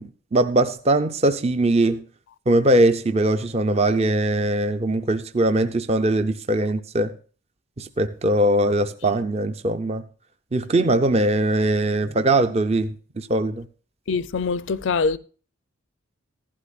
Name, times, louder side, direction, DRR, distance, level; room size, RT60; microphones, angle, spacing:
voice 1, 0.0-2.0 2.5-7.1 7.8-10.0 10.5-13.7, right 1 dB, 30° right, 0.5 m, -21 dB
voice 2, 14.1-15.2, left 4 dB, 60° left, 0.4 m, -23 dB
15.5 x 11.5 x 2.4 m
head